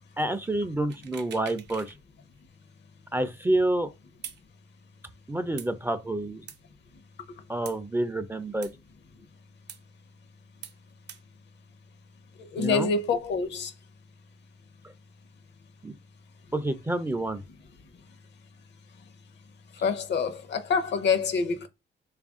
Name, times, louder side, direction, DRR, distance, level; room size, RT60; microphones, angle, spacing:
voice 1, 0.2-1.9 3.1-3.9 5.3-6.4 7.5-8.7 12.6-12.9 15.8-15.9 16.5-17.4, right 1 dB, 10° right, 0.3 m, -28 dB
sound 1, 0.9-2.0 2.3-2.4 4.2-4.4 5.6-5.7 6.5-6.6 7.6-7.8 8.6-8.7 9.7-9.8 10.6-10.8 11.1-11.2, right 8 dB, 60° right, 0.6 m, -43 dB
voice 2, 12.5-13.7 19.8-21.7, left 5 dB, 60° left, 0.7 m, -26 dB
3.3 x 2.5 x 3.5 m
cardioid pair, 90°, 20 cm